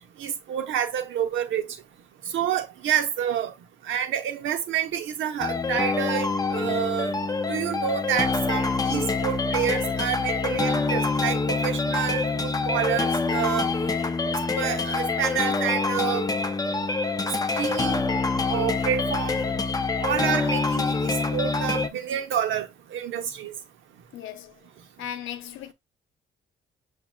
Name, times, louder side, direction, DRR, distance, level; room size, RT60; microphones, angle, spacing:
voice 1, 0.2-1.7 2.3-3.5 3.8-7.1 7.5-13.7 14.6-16.3 17.5-18.1 18.5-19.4 20.0-23.5, right 9 dB, 80° right, 1.0 m, -28 dB
sound 1, 5.4-21.9, left 3 dB, 20° left, 0.6 m, -26 dB
voice 2, 24.1-24.5 25.0-25.7, left 10 dB, 90° left, 0.8 m, -36 dB
7.1 x 2.8 x 2.3 m
cardioid pair, 90°, 20 cm